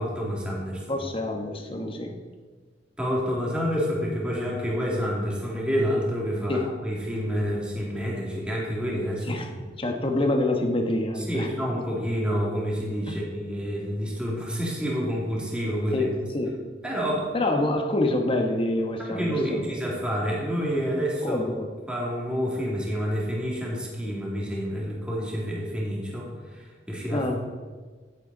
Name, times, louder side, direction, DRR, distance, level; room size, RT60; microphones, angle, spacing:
voice 1, 0.0-1.0 3.0-9.4 11.2-16.1 16.8-17.3 19.1-21.4 21.9-27.3, equal, 5° right, -4 dB, 2.6 m, -28 dB
voice 2, 0.9-2.1 6.5-6.7 9.3-11.5 13.1-13.2 15.9-16.6 17.3-19.7 21.2-21.7 27.1-27.3, left 1 dB, 30° left, 3 dB, 1.4 m, -26 dB
16.5 x 8.3 x 4.1 m, 1.4 s
head